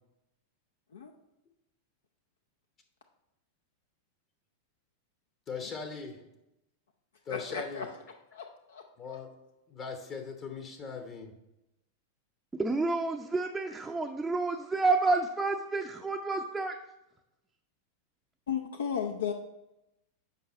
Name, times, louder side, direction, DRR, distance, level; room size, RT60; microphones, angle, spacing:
voice 1, 5.5-6.3 7.2-7.9 9.0-9.3 9.7-11.3, left 5 dB, 30° left, 4 dB, 0.9 m, -40 dB
voice 2, 7.3-7.9 8.3-9.2 18.5-19.3, left 7 dB, 65° left, 4 dB, 0.5 m, -35 dB
voice 3, 12.5-16.8, right 3 dB, 10° right, 2 dB, 0.5 m, -29 dB
8.2 x 5.5 x 4.2 m, 0.90 s
figure-of-eight pair, 90°, 0 cm